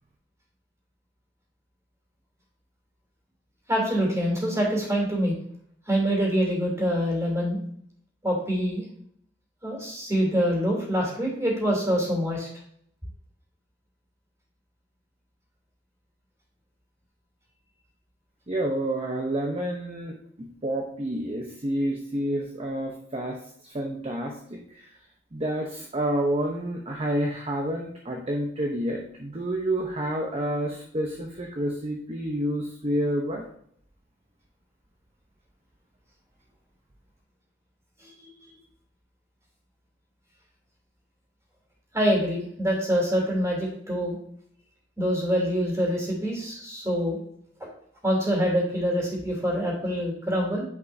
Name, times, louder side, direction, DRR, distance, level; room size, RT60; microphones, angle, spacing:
voice 1, 3.7-5.3 5.9-7.6 8.2-8.8 9.6-12.5 38.0-38.3 41.9-44.2 45.0-47.2 47.6-47.7 48.0-50.6, equal, 15° right, -2 dB, 3.1 m, -25 dB
voice 2, 18.5-23.4 23.6-24.9 25.3-33.5, right 1 dB, 30° right, 1 dB, 0.8 m, -29 dB
9.6 x 5.4 x 2.7 m, 0.66 s
head